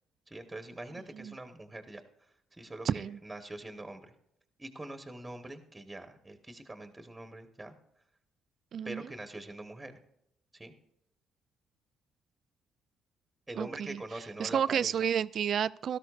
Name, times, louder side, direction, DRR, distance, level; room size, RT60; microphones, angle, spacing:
voice 1, 0.3-4.1 4.6-7.7 8.8-10.0 10.5-10.7 13.5-14.9, right 2 dB, 15° right, 7 dB, 1.2 m, -44 dB
voice 2, 2.8-3.2 8.7-9.0 13.6-14.0 14.4-16.0, right 8 dB, 60° right, 18 dB, 0.3 m, -31 dB
17.5 x 12.5 x 2.4 m, 0.79 s
supercardioid pair, 55°, 0 cm